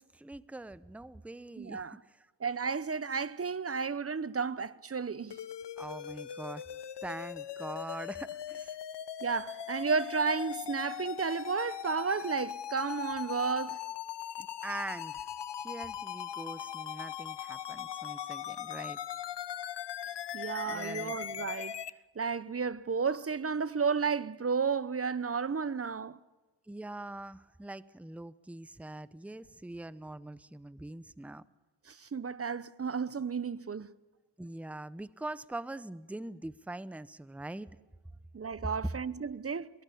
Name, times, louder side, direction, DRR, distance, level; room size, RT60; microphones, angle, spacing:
voice 1, 0.0-2.3 5.8-6.6 7.0-8.8 14.4-15.3 15.5-19.0 20.7-21.2 26.7-31.4 34.4-37.7, right 2 dB, 5° right, 0.7 m, -43 dB
voice 2, 1.6-2.0 2.4-5.4 9.2-13.8 20.3-21.7 22.1-26.2 31.9-33.9 38.3-39.7, right 5 dB, 30° right, 0.8 m, -32 dB
sound 1, 5.3-21.9, left 10 dB, 65° left, 0.9 m, -40 dB
22.0 x 19.0 x 8.5 m
cardioid pair, 75°, 44 cm